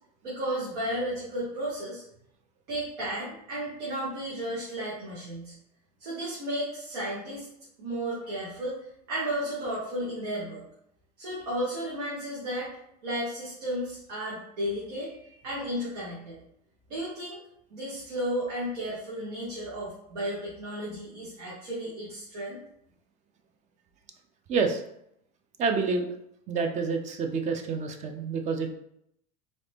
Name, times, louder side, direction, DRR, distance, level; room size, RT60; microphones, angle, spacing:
voice 1, 0.2-2.0 2.7-5.5 6.0-7.5 7.8-8.8 9.1-10.6 11.2-12.7 13.0-16.4 16.9-17.4 17.7-22.6, right 1 dB, 90° right, -7 dB, 1.5 m, -33 dB
voice 2, 24.5-24.8 25.6-26.1 26.5-28.7, right 4 dB, 35° right, 5 dB, 0.6 m, -28 dB
3.9 x 2.6 x 3.4 m, 0.77 s
supercardioid pair, 120°, 21 cm